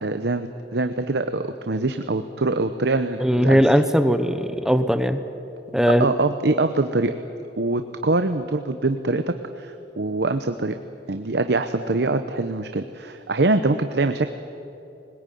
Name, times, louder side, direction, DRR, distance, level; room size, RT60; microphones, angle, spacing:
voice 1, 0.0-3.6 6.0-7.1 7.6-10.8 11.1-14.3, right 2 dB, 65° right, 9 dB, 0.9 m, -24 dB
voice 2, 3.2-5.2 5.7-6.1, equal, 5° right, 10 dB, 0.9 m, -19 dB
21.0 x 20.0 x 9.3 m, 2.9 s
head